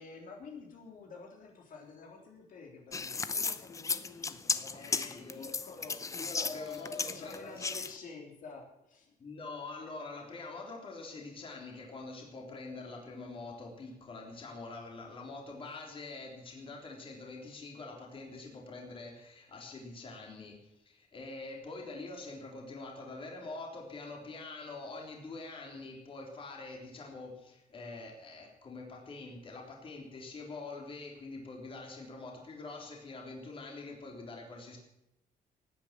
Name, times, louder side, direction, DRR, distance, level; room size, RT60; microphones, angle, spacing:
voice 1, 0.0-6.0 6.4-9.1, left 4 dB, 65° left, 0 dB, 3.6 m, -48 dB
sound 1, 2.9-7.9, left 4 dB, 20° left, 0.7 m, -35 dB
voice 2, 4.7-5.5 6.2-7.7 9.2-34.8, left 3 dB, 35° left, 0 dB, 3.7 m, -45 dB
18.0 x 9.9 x 7.5 m, 0.86 s
wide cardioid pair, 175°, 15 cm